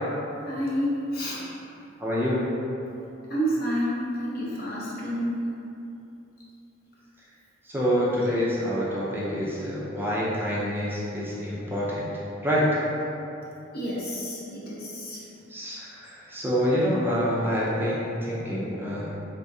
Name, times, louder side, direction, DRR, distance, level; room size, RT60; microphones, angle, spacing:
voice 1, 0.4-1.4 3.3-5.3 13.7-15.2, equal, 50° left, -6 dB, 0.8 m, -29 dB
voice 2, 2.0-2.4 7.6-12.1 12.4-12.6 15.5-19.1, equal, 10° right, -7 dB, 0.5 m, -27 dB
3.5 x 3.5 x 2.7 m, 2.8 s
head